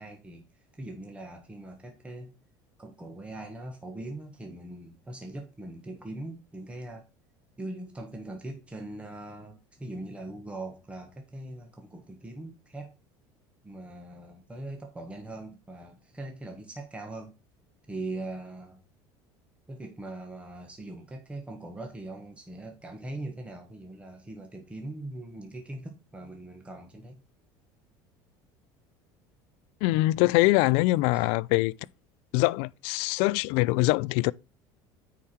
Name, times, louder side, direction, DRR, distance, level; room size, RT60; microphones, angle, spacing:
voice 1, 0.0-2.3 2.8-7.1 7.6-12.9 13.6-17.3 17.9-18.8 19.7-27.2 31.1-31.3, right 2 dB, 10° right, 1.4 m, -41 dB
voice 2, 29.8-31.7 32.3-34.3, left 20 dB, 75° left, 0.4 m, -23 dB
9.2 x 4.8 x 4.3 m
supercardioid pair, 115°, 10 cm